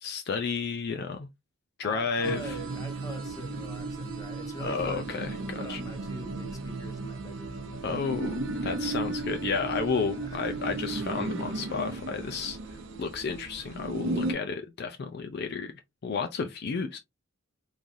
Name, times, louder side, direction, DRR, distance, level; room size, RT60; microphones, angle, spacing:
voice 1, 0.0-1.3 1.8-2.5 4.6-5.8 7.8-12.6 13.0-15.7 16.0-17.0, left 5 dB, 50° left, 0.4 m, -32 dB
voice 2, 1.8-8.3 8.5-8.9 10.1-10.4 11.3-11.4, right 1 dB, 15° left, 0.8 m, -44 dB
sound 1, 2.2-14.3, right 2 dB, 65° right, 0.7 m, -35 dB
3.8 x 3.1 x 2.5 m
head